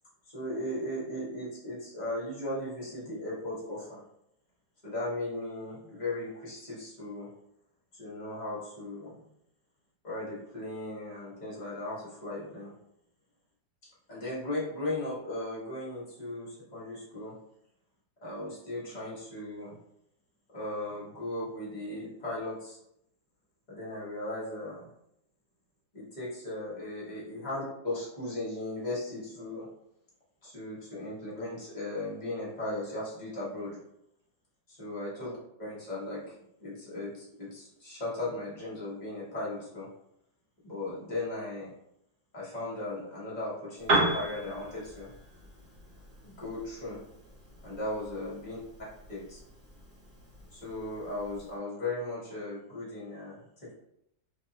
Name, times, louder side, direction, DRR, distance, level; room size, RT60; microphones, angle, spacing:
voice 1, 0.3-4.0 4.8-7.3 7.9-9.2 10.0-12.7 14.1-17.4 18.2-19.8 20.5-22.8 23.7-24.9 25.9-29.7 30.4-33.8 34.7-35.3 35.6-36.3 36.6-39.9 40.6-41.7 42.3-45.1 46.2-47.0 47.6-48.6 49.1-49.4 50.5-53.7, left 1 dB, 30° left, -6 dB, 0.9 m, -37 dB
Piano, 43.8-51.6, right 2 dB, 40° right, 0.8 m, -36 dB
2.7 x 2.4 x 2.7 m, 0.77 s
omnidirectional pair, 1.9 m